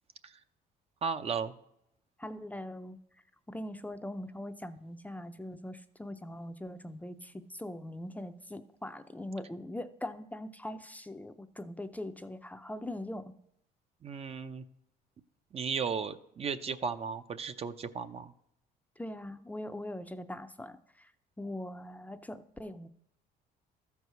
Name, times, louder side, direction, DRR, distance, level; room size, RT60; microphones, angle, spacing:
voice 1, 1.0-1.5 14.0-14.6 15.5-18.3, right 6 dB, 35° right, 10 dB, 0.6 m, -35 dB
voice 2, 2.2-3.0 3.5-13.3 19.0-21.1 21.4-22.9, left 1 dB, 10° left, 9 dB, 0.5 m, -41 dB
13.0 x 4.7 x 6.7 m, 0.75 s
cardioid pair, 110°, 17 cm